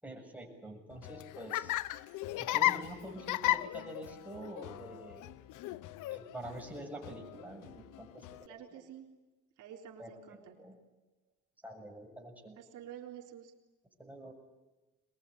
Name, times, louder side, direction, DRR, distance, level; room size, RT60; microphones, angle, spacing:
voice 1, 0.0-1.8 2.4-5.3 6.1-8.5 10.0-10.7 11.6-12.6 14.0-14.3, right 1 dB, 5° right, 0 dB, 7.0 m, -47 dB
Laughter, 0.9-8.5, left 15 dB, 90° left, 0.8 m, -36 dB
voice 2, 8.4-9.1 9.6-10.6 12.6-13.5, right 9 dB, 90° right, 1 dB, 3.9 m, -49 dB
22.5 x 21.5 x 9.9 m, 1.1 s
cardioid pair, 90°, 30 cm